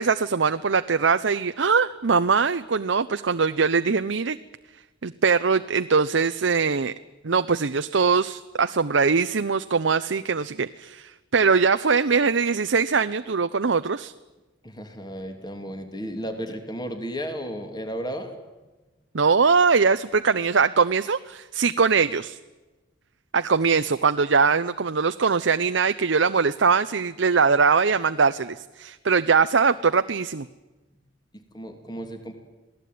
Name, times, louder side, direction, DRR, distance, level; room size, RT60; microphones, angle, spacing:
voice 1, 0.0-4.4 5.0-6.9 7.2-14.1 19.1-22.4 23.3-30.5, right 5 dB, 85° right, 9 dB, 0.7 m, -22 dB
voice 2, 14.6-18.4 31.3-32.4, equal, 25° left, 6 dB, 2.8 m, -34 dB
27.0 x 18.0 x 9.4 m, 1.1 s
head